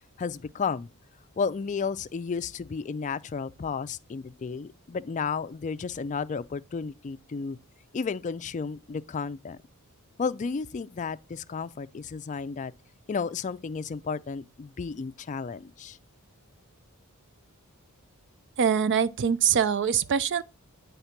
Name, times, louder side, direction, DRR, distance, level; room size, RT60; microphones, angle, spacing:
voice 1, 0.2-0.9 1.4-7.6 7.9-9.6 10.2-12.7 13.1-16.0, left 5 dB, 35° left, 0.4 m, -32 dB
voice 2, 18.6-20.4, right 7 dB, 55° right, 0.4 m, -23 dB
9.4 x 3.5 x 5.8 m
head